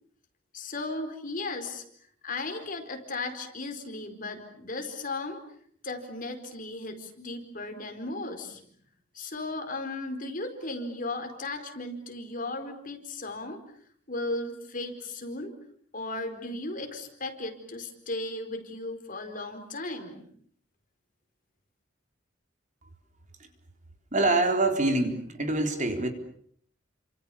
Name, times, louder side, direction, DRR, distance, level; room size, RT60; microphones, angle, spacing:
voice 1, 0.5-1.8 2.2-5.4 5.8-8.6 9.1-13.6 14.1-15.5 15.9-20.3, left 2 dB, 45° left, 6 dB, 4.6 m, -36 dB
voice 2, 24.1-26.1, right 2 dB, 40° right, 5 dB, 4.1 m, -25 dB
30.0 x 27.0 x 7.1 m, 0.64 s
head